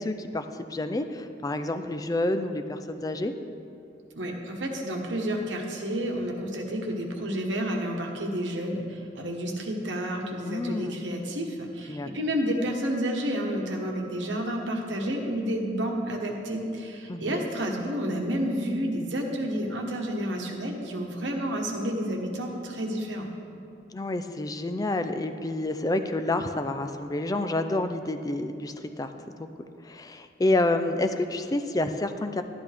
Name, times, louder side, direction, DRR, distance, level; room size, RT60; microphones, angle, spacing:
voice 1, 0.0-3.3 10.4-11.0 11.9-12.1 17.1-17.4 23.9-29.1 29.6-32.4, left 2 dB, 20° left, 8 dB, 0.4 m, -29 dB
voice 2, 4.2-23.3, equal, 75° right, 1 dB, 1.3 m, -30 dB
12.5 x 10.5 x 3.4 m, 2.6 s
head